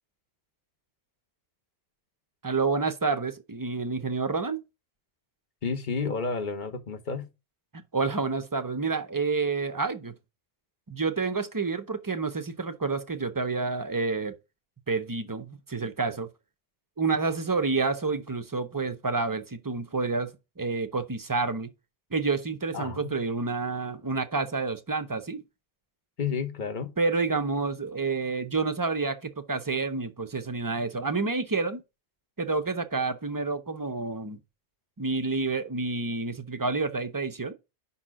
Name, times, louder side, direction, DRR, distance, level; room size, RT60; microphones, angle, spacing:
voice 1, 2.4-4.6 7.9-10.1 10.9-14.3 14.9-16.3 17.0-21.7 22.1-25.4 27.0-31.8 32.4-34.4 35.0-37.5, right 4 dB, 30° right, 0.4 m, -29 dB
voice 2, 5.6-7.3 22.7-23.1 26.2-26.9, left 5 dB, 45° left, 1.0 m, -31 dB
5.5 x 4.3 x 6.0 m
omnidirectional pair, 1.1 m